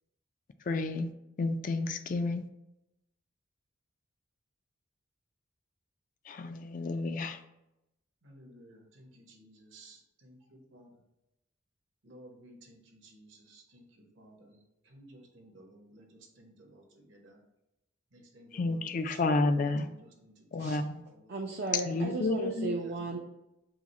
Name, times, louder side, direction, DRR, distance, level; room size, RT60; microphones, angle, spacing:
voice 1, 0.7-1.1 1.4-2.5 6.3-7.4 18.5-19.9 20.5-21.0 21.9-22.7, left 2 dB, 40° left, 9 dB, 0.3 m, -30 dB
voice 2, 8.2-10.9 12.0-14.5 14.9-17.4 18.1-21.3 22.8-22.9, right 1 dB, 70° right, 0 dB, 1.0 m, -56 dB
voice 3, 21.3-23.2, right 3 dB, 50° right, 1 dB, 0.4 m, -35 dB
4.8 x 2.1 x 4.1 m, 0.89 s
head